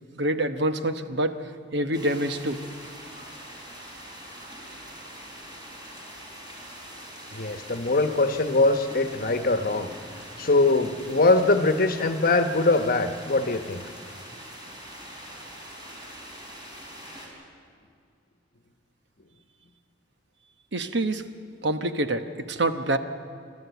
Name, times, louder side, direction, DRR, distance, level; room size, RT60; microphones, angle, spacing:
voice 1, 0.1-2.6 20.7-21.2 21.6-23.0, right 1 dB, 65° right, 8 dB, 1.0 m, -26 dB
sound 1, 1.9-17.3, equal, 25° right, 4.1 m, -43 dB
voice 2, 7.3-9.9 10.4-13.9, left 2 dB, 50° left, 8 dB, 1.1 m, -22 dB
28.0 x 13.0 x 8.2 m, 2.2 s
head